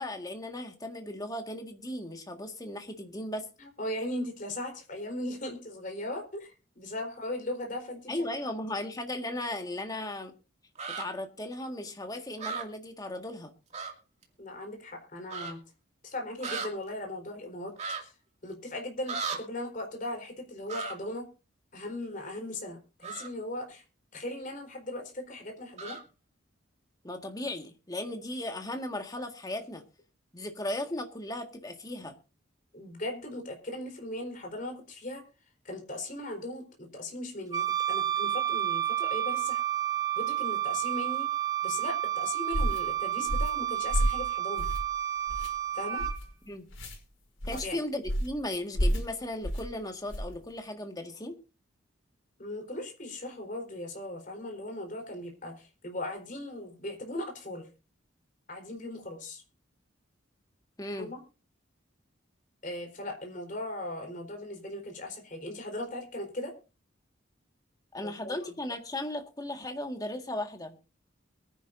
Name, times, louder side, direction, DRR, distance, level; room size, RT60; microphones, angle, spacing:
voice 1, 0.0-3.5 8.1-10.3 10.9-13.5 27.0-29.8 30.3-32.2 46.5-46.7 47.5-51.4 60.8-61.1 67.9-70.8, left 1 dB, 20° left, 1.8 m, -36 dB
voice 2, 3.6-8.2 14.4-15.6 16.0-17.7 18.0-18.1 18.4-21.3 21.7-23.8 24.1-26.0 32.7-35.2 35.6-39.6 40.1-41.3 41.6-44.7 45.7-46.0 47.6-47.8 52.4-57.7 58.5-59.4 61.0-61.2 62.6-66.5 68.0-68.4, left 1 dB, 40° left, 4.2 m, -38 dB
sound 1, 10.7-11.1 12.4-12.6 13.7-13.9 14.2-14.3 15.3-15.5 16.4-16.7 17.8-18.0 19.1-19.4 20.7-20.9 23.0-23.3 25.8-26.0, right 5 dB, 35° right, 2.4 m, -35 dB
Wind instrument woodwind instrument, 37.5-46.2, right 12 dB, 20° right, 1.1 m, -30 dB
sound 2, 42.5-42.8 43.3-43.6 43.9-44.2 44.6-44.9 45.3-45.5 46.0-46.2 46.7-47.0 47.4-47.6 48.1-48.4 48.7-49.1 49.4-49.7 50.1-50.3, equal, 75° left, 5.3 m, -29 dB
23.0 x 10.5 x 2.6 m
head